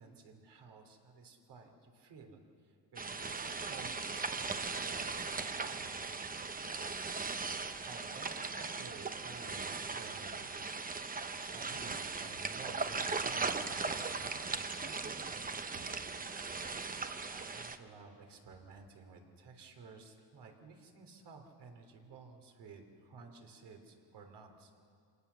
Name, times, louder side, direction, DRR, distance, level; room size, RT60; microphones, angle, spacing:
voice 1, 0.0-6.3 7.8-10.6 11.5-16.1 17.3-24.8, right 4 dB, 65° right, 3 dB, 3.5 m, -54 dB
sound 1, 3.0-17.8, right 4 dB, 20° right, 0.8 m, -38 dB
27.0 x 19.0 x 7.0 m, 2.3 s
cardioid pair, 120°, 44 cm